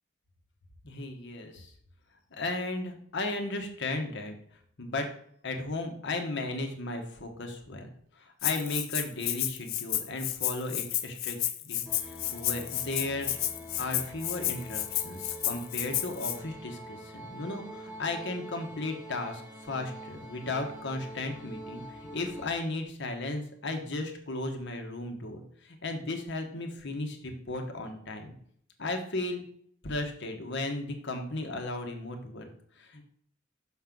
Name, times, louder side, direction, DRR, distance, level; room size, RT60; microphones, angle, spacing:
voice 1, 0.8-1.7 2.3-4.3 4.8-5.1 5.4-7.9 8.2-11.4 11.6-11.8 12.3-13.4 13.8-21.8 22.1-28.3 28.8-29.4 29.8-32.4 32.8-33.0, left 2 dB, 60° left, 4 dB, 1.2 m, -35 dB
Rattle (instrument), 8.4-16.4, left 13 dB, 85° left, 0.6 m, -32 dB
sound 1, 11.8-22.5, right 1 dB, 5° right, 1.0 m, -45 dB
6.4 x 3.8 x 6.0 m, 0.63 s
head